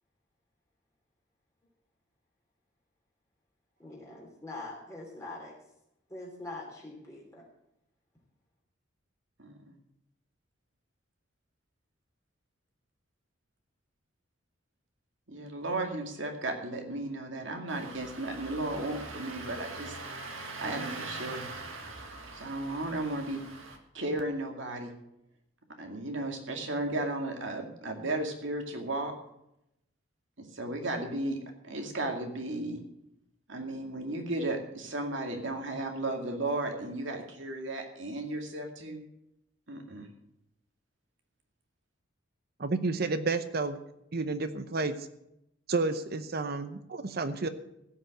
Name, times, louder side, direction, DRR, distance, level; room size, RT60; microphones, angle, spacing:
voice 1, 3.8-5.5 6.1-7.4, left 2 dB, 15° left, -3 dB, 3.0 m, -43 dB
voice 2, 9.4-9.7 15.3-20.0 20.6-21.5 22.3-23.4 23.9-25.0 25.8-29.1 30.4-31.4 31.6-32.8 33.5-39.0 39.7-40.1, right 2 dB, 70° right, 3 dB, 2.2 m, -34 dB
Engine starting, 17.7-23.8, right 3 dB, 85° right, 1.7 m, -42 dB
voice 3, 42.6-43.8 44.1-44.9 45.7-47.5, right 3 dB, 50° right, 11 dB, 0.8 m, -30 dB
16.0 x 5.7 x 7.5 m, 0.81 s
head